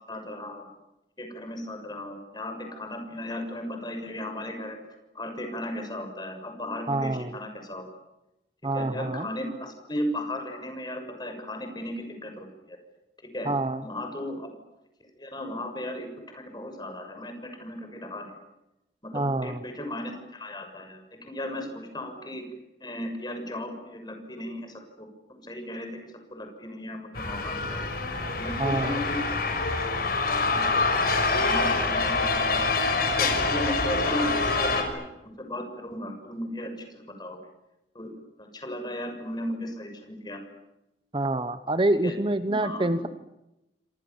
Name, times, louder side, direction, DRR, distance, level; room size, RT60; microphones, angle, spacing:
voice 1, 0.1-0.7 1.2-4.8 5.1-7.9 8.7-12.8 13.2-13.5 13.8-14.5 15.2-18.4 19.0-22.4 22.8-27.9 28.3-30.1 30.4-32.5 33.1-35.0 35.4-37.4 37.9-38.1 38.4-40.4 42.0-42.1 42.5-43.1, left 1 dB, 25° left, 5 dB, 6.7 m, -36 dB
voice 2, 6.9-7.3 8.6-9.3 13.4-13.8 19.1-19.6 28.6-29.0 41.1-43.1, right 2 dB, 30° right, 11 dB, 1.0 m, -26 dB
sound 1, 27.2-34.8, left 3 dB, 55° left, 6.0 m, -26 dB
28.5 x 27.0 x 7.2 m, 0.92 s
head